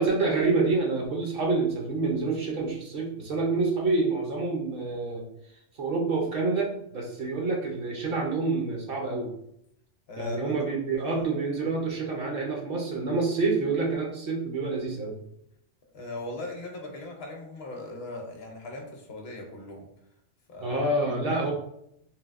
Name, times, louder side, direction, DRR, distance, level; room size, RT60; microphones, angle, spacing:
voice 1, 0.0-5.2 5.8-9.3 10.2-15.2 20.6-21.5, right 3 dB, 55° right, -1 dB, 0.7 m, -27 dB
voice 2, 10.1-10.7 11.1-11.3 15.8-19.9 20.5-21.5, left 2 dB, 65° left, 2 dB, 0.8 m, -39 dB
3.3 x 2.7 x 2.4 m, 0.75 s
omnidirectional pair, 1.3 m